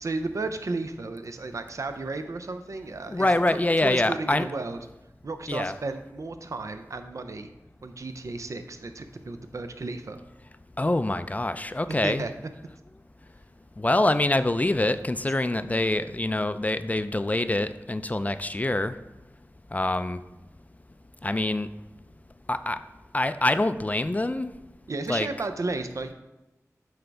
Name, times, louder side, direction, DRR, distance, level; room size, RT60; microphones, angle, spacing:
voice 1, 0.0-3.3 3.5-4.8 5.2-7.5 7.8-10.2 12.0-12.3 24.9-26.1, right 3 dB, 65° right, 8 dB, 0.5 m, -33 dB
voice 2, 3.1-4.5 5.5-5.7 10.8-12.3 13.8-18.9 19.7-20.2 21.2-21.7 22.5-22.8 23.1-24.5 25.1-25.3, left 2 dB, 25° left, 12 dB, 0.4 m, -25 dB
7.9 x 4.7 x 3.4 m, 1.0 s
wide cardioid pair, 45°, 6 cm